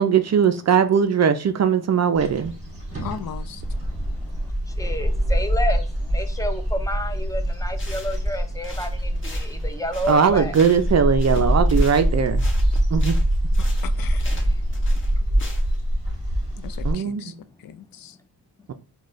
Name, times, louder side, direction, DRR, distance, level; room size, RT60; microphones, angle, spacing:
voice 1, 0.0-2.5 10.1-12.5 12.9-13.2 16.8-17.2, right 7 dB, 40° right, 0.4 m, -19 dB
sound 1, 2.1-16.9, equal, 15° right, 1.8 m, -24 dB
voice 2, 3.0-3.6 13.8-14.3 16.6-17.3 17.6-18.2, left 9 dB, 55° left, 0.5 m, -37 dB
voice 3, 3.8-10.5 14.2-15.1, left 1 dB, 10° left, 0.5 m, -31 dB
sound 2, 7.5-7.6 7.8-8.3 8.6-10.9 11.2-15.8, left 2 dB, 30° left, 1.1 m, -42 dB
4.0 x 2.3 x 3.0 m
cardioid pair, 90°, 43 cm